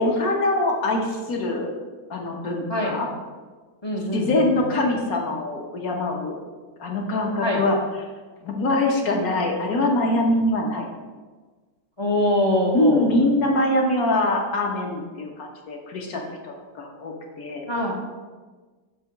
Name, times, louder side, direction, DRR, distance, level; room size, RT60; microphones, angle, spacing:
voice 1, 0.0-1.7 2.1-3.1 4.1-6.4 6.8-7.8 8.4-10.9 12.7-17.6, left 2 dB, 60° left, 1 dB, 1.4 m, -23 dB
voice 2, 3.8-4.5 7.4-7.6 12.0-13.1 17.7-18.0, left 1 dB, 25° left, -1 dB, 0.5 m, -23 dB
8.4 x 3.0 x 5.8 m, 1.4 s
omnidirectional pair, 1.9 m